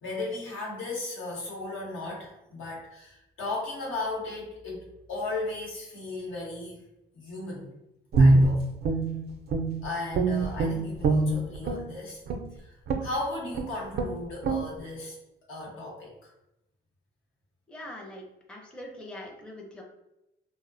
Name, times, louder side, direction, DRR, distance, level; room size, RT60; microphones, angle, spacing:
voice 1, 0.0-6.8 7.1-7.7 8.2-8.6 9.8-12.2 12.6-12.7 13.0-15.2 15.5-16.3, left 2 dB, 85° left, -3 dB, 0.9 m, -36 dB
Guitar, 8.1-9.8 10.1-11.9 12.3-12.5 12.9-13.2 13.5-13.7 13.9-14.1 14.4-14.6, right 2 dB, 55° right, 0.4 m, -23 dB
voice 2, 17.7-18.2 18.5-19.8, left 1 dB, 5° left, -1 dB, 0.5 m, -42 dB
2.4 x 2.0 x 2.5 m, 0.89 s
cardioid pair, 90°, 20 cm